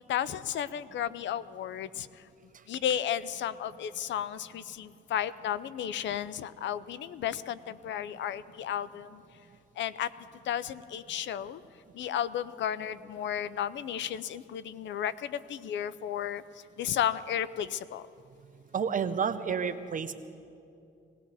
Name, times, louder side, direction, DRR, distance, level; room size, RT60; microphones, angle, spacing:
voice 1, 0.1-2.1 2.7-9.2 9.8-10.1 10.4-11.6 11.9-16.4 16.8-18.0, left 10 dB, 65° left, 16 dB, 0.5 m, -33 dB
voice 2, 18.7-20.1, right 6 dB, 40° right, 10 dB, 0.8 m, -30 dB
18.5 x 17.5 x 4.1 m, 2.6 s
cardioid pair, 90°, 20 cm